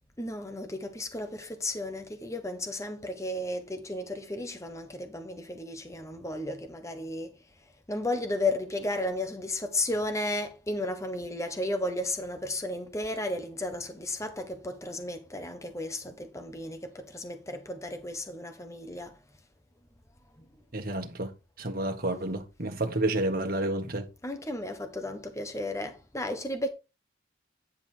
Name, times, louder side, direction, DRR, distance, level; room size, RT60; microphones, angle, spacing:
voice 1, 0.2-7.3 7.9-19.2 24.2-26.7, left 1 dB, 15° left, 1.2 m, -34 dB
voice 2, 20.7-21.3 21.6-24.1, right 1 dB, 45° right, 1.7 m, -30 dB
10.0 x 5.5 x 4.5 m
head